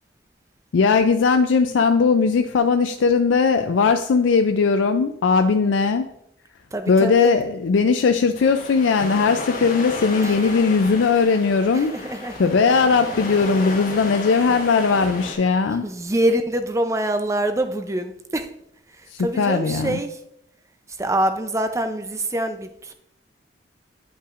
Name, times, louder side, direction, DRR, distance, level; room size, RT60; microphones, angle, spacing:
voice 1, 0.7-6.1 6.9-15.9 19.1-20.0, left 5 dB, 85° left, 7 dB, 0.4 m, -19 dB
voice 2, 6.7-7.3 10.2-10.5 11.7-12.5 14.3-14.5 15.8-18.5 19.0-20.2 21.0-22.9, right 1 dB, 15° right, 8 dB, 0.5 m, -25 dB
sound 1, 8.3-15.3, left 2 dB, 50° left, 1.2 m, -33 dB
9.7 x 5.5 x 2.5 m, 0.76 s
head